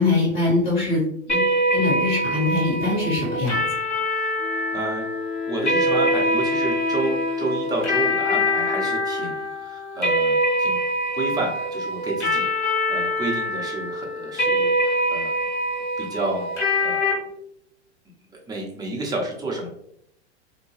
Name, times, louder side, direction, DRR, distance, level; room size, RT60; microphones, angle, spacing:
voice 1, 0.0-1.4 1.7-3.6, left 3 dB, 35° left, -5 dB, 1.5 m, -22 dB
sound 1, 1.3-17.1, equal, 90° left, 1.4 m, -24 dB
voice 2, 4.1-4.4 4.7-5.1 5.5-10.8 11.1-15.4 16.0-16.5 16.8-17.0 18.5-19.7, right 2 dB, 10° right, -1 dB, 0.7 m, -30 dB
Wind instrument woodwind instrument, 4.4-9.4, left 5 dB, 60° left, 0.6 m, -30 dB
2.7 x 2.1 x 3.2 m, 0.73 s
hypercardioid pair, 100°, 34 cm